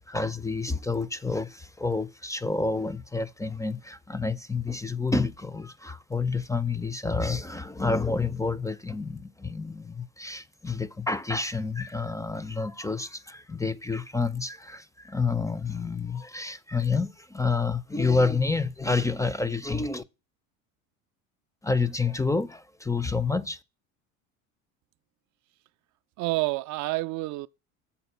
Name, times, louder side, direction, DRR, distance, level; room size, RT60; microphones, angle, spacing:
voice 1, 0.0-20.0 21.6-23.6, left 4 dB, 10° left, 0.5 m, -29 dB
voice 2, 26.2-27.5, right 21 dB, 50° right, 0.4 m, -28 dB
7.1 x 4.0 x 6.6 m
hypercardioid pair, 75°, 41 cm